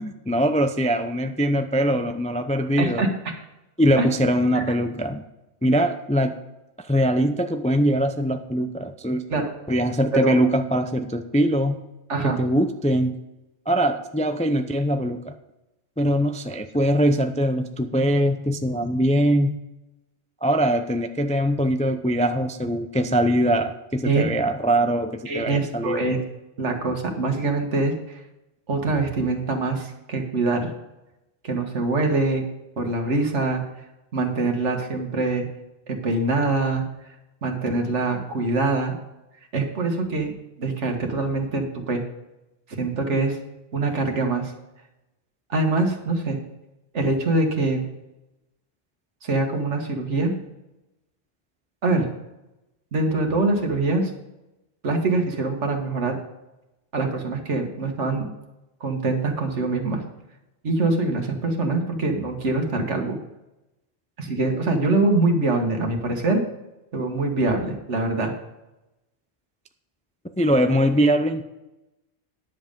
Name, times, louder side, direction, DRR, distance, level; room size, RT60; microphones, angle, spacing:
voice 1, 0.0-3.0 3.8-5.2 5.6-6.3 6.8-9.2 9.7-11.8 12.2-13.2 13.7-15.3 16.0-19.6 20.4-26.0 70.4-71.4, equal, 10° left, 7 dB, 0.3 m, -22 dB
voice 2, 2.8-3.1 4.0-4.1 4.6-4.7 9.3-9.4 10.1-10.4 12.1-12.4 24.0-24.2 25.3-26.2 26.6-28.2 28.7-30.7 31.4-32.4 32.8-33.6 34.1-35.5 35.9-36.8 37.4-38.9 39.5-40.3 40.6-42.0 42.7-43.4 43.7-44.5 45.5-46.4 46.9-47.8 49.2-50.3 51.8-52.1 52.9-54.1 54.8-56.1 56.9-58.3 58.8-60.0 60.6-63.2 64.2-66.4 66.9-68.3, right 3 dB, 85° right, 3 dB, 1.8 m, -24 dB
10.5 x 7.4 x 5.3 m, 0.95 s
omnidirectional pair, 1.2 m